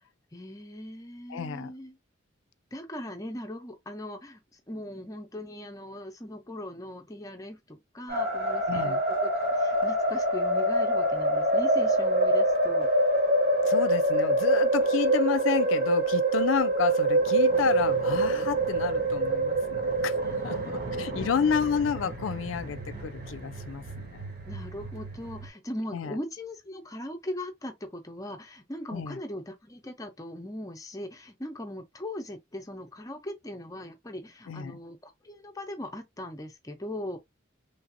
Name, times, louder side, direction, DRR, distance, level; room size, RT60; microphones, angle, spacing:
voice 1, 0.3-2.0 2.7-12.9 20.2-21.5 24.5-37.2, left 1 dB, 15° left, 0.6 m, -40 dB
voice 2, 1.3-1.7 8.7-9.0 13.7-20.2 20.4-24.2 25.9-26.2 28.9-29.2 34.5-34.8, left 6 dB, 70° left, 0.4 m, -30 dB
sound 1, 8.1-25.5, right 1 dB, 50° right, 1.1 m, -26 dB
3.3 x 2.5 x 2.6 m
head